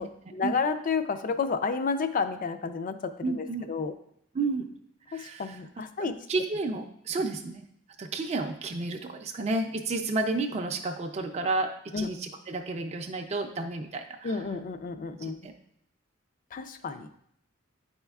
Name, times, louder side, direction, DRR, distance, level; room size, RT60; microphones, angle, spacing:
voice 1, 0.0-3.9 5.1-6.1 11.9-12.1 14.2-15.4 16.5-17.1, left 5 dB, 40° left, 10 dB, 0.4 m, -31 dB
voice 2, 3.2-3.7 4.3-4.7 5.1-5.6 6.0-7.6 8.0-14.4 15.2-15.5, right 3 dB, 30° right, 3 dB, 0.4 m, -31 dB
9.6 x 4.3 x 2.3 m, 0.72 s
head